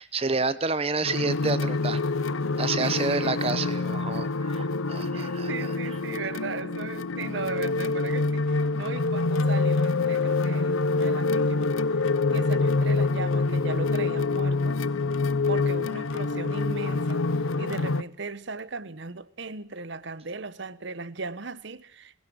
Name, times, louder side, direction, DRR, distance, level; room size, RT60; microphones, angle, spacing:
voice 1, 0.0-2.0 2.6-5.7, right 3 dB, 30° right, 0.8 m, -29 dB
sound 1, 1.0-18.0, left 3 dB, 75° left, 0.7 m, -26 dB
voice 2, 2.8-3.3 5.1-12.0 12.3-14.8 15.5-17.2 17.6-22.2, right 4 dB, 60° right, 0.9 m, -37 dB
21.0 x 16.5 x 7.8 m
head